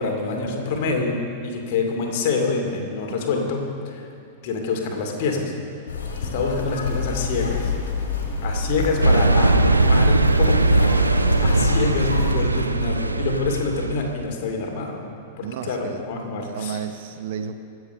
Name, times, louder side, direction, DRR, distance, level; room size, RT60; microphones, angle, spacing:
voice 1, 0.0-4.1 4.4-5.5 6.2-7.7 8.4-10.7 11.0-15.0 15.4-16.8, left 4 dB, 50° left, 2 dB, 2.5 m, -26 dB
sound 1, 5.9-12.3, left 3 dB, 70° left, 2.6 m, -27 dB
sound 2, 9.0-14.1, right 2 dB, 85° right, 0.6 m, -19 dB
voice 2, 15.4-17.5, right 8 dB, 55° right, 9 dB, 0.9 m, -33 dB
23.5 x 8.2 x 5.6 m, 2.4 s
figure-of-eight pair, 95°, 0 cm